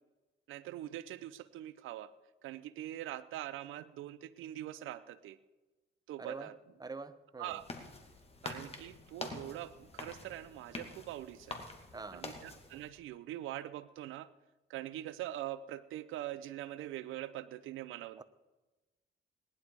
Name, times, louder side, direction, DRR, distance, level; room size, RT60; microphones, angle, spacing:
voice 1, 0.5-2.1 2.4-5.4 6.1-6.5 7.4-7.6 8.4-11.6 12.1-14.3 14.7-18.2, right 13 dB, 90° right, 0.7 m, -43 dB
voice 2, 6.2-6.5 6.8-7.6 11.9-12.3 18.2-18.3, right 4 dB, 20° right, 0.9 m, -45 dB
sound 1, 7.5-12.9, left 3 dB, 30° left, 2.3 m, -46 dB
19.0 x 11.0 x 4.8 m
cardioid pair, 90°, 20 cm